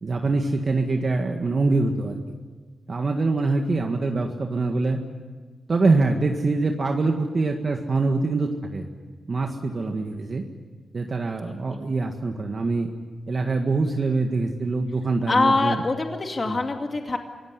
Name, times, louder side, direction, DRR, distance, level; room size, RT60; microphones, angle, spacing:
voice 1, 0.0-2.2 2.9-5.0 5.7-8.9 9.3-10.4 10.9-12.9 13.3-15.8 16.4-16.6, right 3 dB, 50° right, 3 dB, 1.8 m, -24 dB
voice 2, 15.3-17.2, left 3 dB, 40° left, 4 dB, 2.4 m, -24 dB
24.5 x 17.5 x 9.7 m, 1.4 s
cardioid pair, 70°, 0 cm